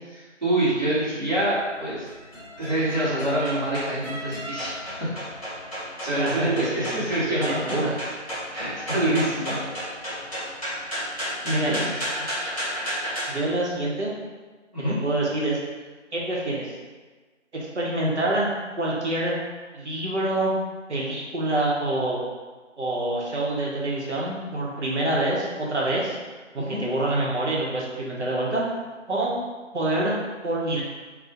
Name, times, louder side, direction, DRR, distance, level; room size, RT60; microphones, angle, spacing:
voice 1, 0.4-2.1 2.6-5.1 6.0-7.6 8.5-9.9 11.1-12.0 14.7-15.0 26.6-26.8, right 1 dB, 40° right, -10 dB, 0.8 m, -26 dB
sound 1, 1.5-13.3, equal, 30° left, 0.9 m, -33 dB
voice 2, 6.1-6.7 7.5-7.9 11.5-11.8 13.3-14.1 15.0-15.6 16.1-16.7 17.5-18.5 18.8-19.4 19.7-20.5 20.9-22.2 22.8-26.2 26.5-28.6 29.1-29.3 29.7-30.8, right 1 dB, 65° right, -4 dB, 0.7 m, -26 dB
2.2 x 2.1 x 2.7 m, 1.4 s
figure-of-eight pair, 165°, 37 cm